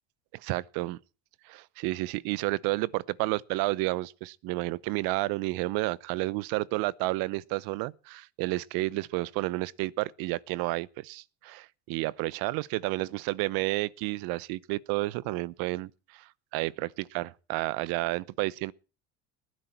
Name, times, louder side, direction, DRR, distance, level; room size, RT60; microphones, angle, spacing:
voice 1, 0.3-1.0 1.4-18.7, right 20 dB, 70° right, 0.9 m, -31 dB
20.0 x 10.5 x 4.5 m
supercardioid pair, 95°, 37 cm